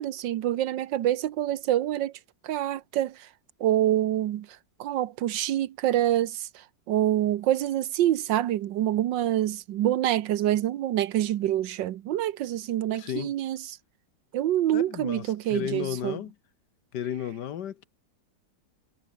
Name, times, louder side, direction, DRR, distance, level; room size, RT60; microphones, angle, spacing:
voice 1, 0.0-2.1 2.4-3.3 3.6-4.5 4.8-6.5 6.9-13.6 14.3-16.2, right 12 dB, 90° right, 1.6 m, -26 dB
voice 2, 12.9-13.3 14.7-16.3 16.9-17.8, left 10 dB, 70° left, 1.7 m, -33 dB
omnidirectional pair, 1.9 m